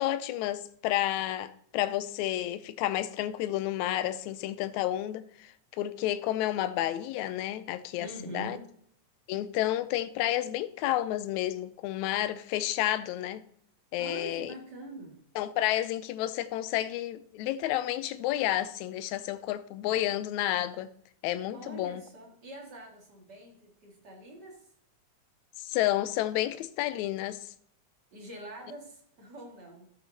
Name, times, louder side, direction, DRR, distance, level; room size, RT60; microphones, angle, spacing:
voice 1, 0.0-8.1 8.3-8.6 9.3-13.4 13.9-14.5 15.4-20.9 21.2-22.0 25.6-27.5, left 13 dB, 80° left, 1.8 m, -30 dB
voice 2, 8.0-8.7 14.0-15.2 21.5-24.7 28.1-29.9, right 1 dB, 35° right, 2.3 m, -44 dB
13.5 x 8.0 x 2.8 m
omnidirectional pair, 3.5 m